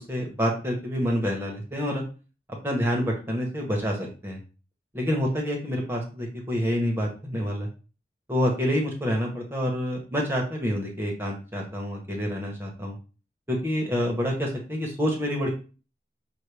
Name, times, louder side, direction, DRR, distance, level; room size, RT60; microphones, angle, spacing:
voice 1, 0.0-2.0 2.6-4.4 4.9-7.7 8.3-13.0 13.5-15.5, equal, 15° right, 0 dB, 0.8 m, -27 dB
5.7 x 2.2 x 3.3 m, 0.34 s
head